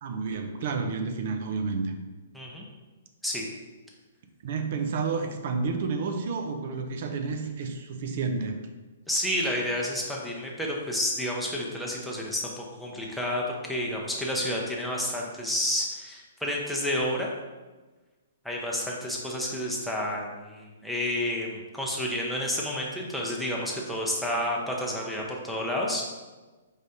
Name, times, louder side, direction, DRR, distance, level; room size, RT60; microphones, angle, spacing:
voice 1, 0.0-1.9 4.4-8.6, right 4 dB, 50° right, 6 dB, 0.5 m, -30 dB
voice 2, 2.3-2.7 3.2-3.5 9.1-17.3 18.4-26.0, left 1 dB, ahead, -3 dB, 0.6 m, -30 dB
4.9 x 3.3 x 2.7 m, 1.2 s
hypercardioid pair, 160°, 0 cm